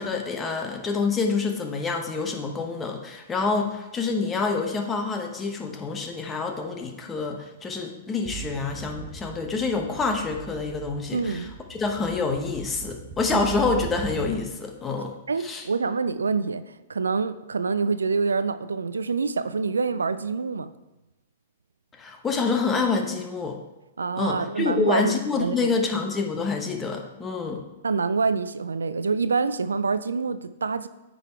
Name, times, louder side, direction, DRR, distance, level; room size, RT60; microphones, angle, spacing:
voice 1, 0.0-15.1 15.4-15.6 22.0-23.6 24.2-27.6, left 4 dB, 20° left, 3 dB, 1.1 m, -27 dB
sound 1, 8.3-14.6, right 7 dB, 30° right, 1.1 m, -39 dB
voice 2, 11.1-11.5 13.3-13.4 15.3-16.6 16.9-20.7 24.0-25.7 27.8-30.9, right 4 dB, 85° right, 13 dB, 0.3 m, -26 dB
9.0 x 3.9 x 4.6 m, 1.0 s
hypercardioid pair, 115°, 0 cm